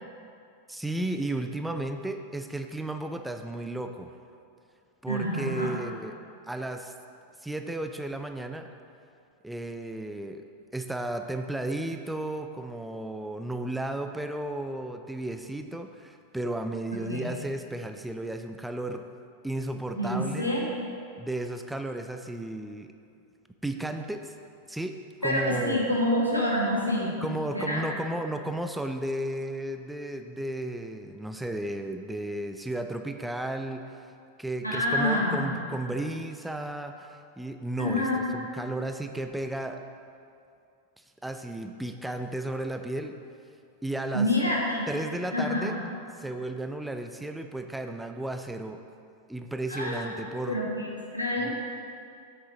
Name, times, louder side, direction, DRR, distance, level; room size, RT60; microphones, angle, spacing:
voice 1, 0.7-4.1 5.0-6.1 6.5-6.9 7.4-8.7 9.4-10.4 10.7-19.0 19.4-20.5 21.2-22.9 23.6-24.3 24.7-25.8 27.2-34.1 34.4-39.8 41.0-43.2 43.8-44.3 44.9-45.8 46.2-48.8 49.3-50.6, right 1 dB, 5° right, 6 dB, 0.4 m, -34 dB
voice 2, 5.1-5.7 16.9-17.3 20.0-20.6 25.2-27.2 27.5-27.8 34.6-35.6 37.8-38.3 44.1-44.9 45.3-45.8 49.7-50.2 50.5-51.5, left 1 dB, 85° left, -4 dB, 1.4 m, -27 dB
7.7 x 6.2 x 3.9 m, 2.4 s
figure-of-eight pair, 90°, 0 cm